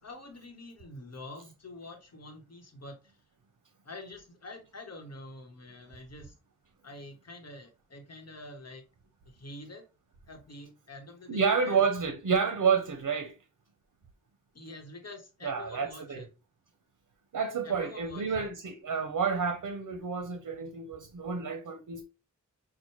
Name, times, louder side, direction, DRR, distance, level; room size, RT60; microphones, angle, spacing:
voice 1, 0.0-3.2 3.8-6.3 6.8-8.8 9.3-9.8 10.3-11.8 14.5-16.3 17.6-18.5, left 2 dB, 55° left, 1.0 m, -46 dB
voice 2, 11.3-13.3 15.4-16.2 17.3-22.0, right 5 dB, 85° right, 0.7 m, -29 dB
5.6 x 2.2 x 3.0 m
wide cardioid pair, 90°, 31 cm